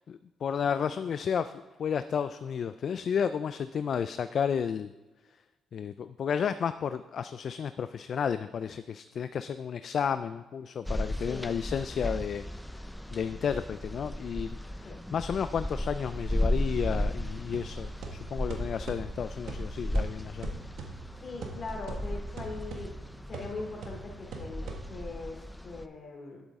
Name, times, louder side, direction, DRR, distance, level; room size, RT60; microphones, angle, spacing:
voice 1, 0.1-1.5 1.8-4.9 5.7-12.4 13.1-14.5 14.8-20.5, left 7 dB, 55° left, 11 dB, 0.3 m, -32 dB
sound 1, 10.8-25.8, left 1 dB, 5° left, 0.5 m, -35 dB
sound 2, 17.5-25.3, right 4 dB, 75° right, 1.4 m, -44 dB
voice 2, 21.2-22.9 23.3-26.4, left 3 dB, 40° left, 1 dB, 2.8 m, -41 dB
11.0 x 8.1 x 3.6 m, 1.2 s
cardioid pair, 90°, 0 cm